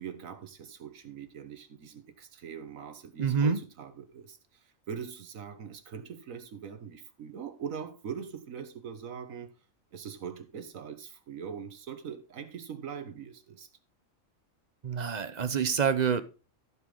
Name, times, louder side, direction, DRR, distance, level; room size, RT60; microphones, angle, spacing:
voice 1, 0.0-9.5 9.9-13.7, right 7 dB, 85° right, 1.5 m, -42 dB
voice 2, 3.2-3.6 14.8-16.2, right 6 dB, 40° right, 0.8 m, -27 dB
15.0 x 5.2 x 3.8 m
omnidirectional pair, 1.4 m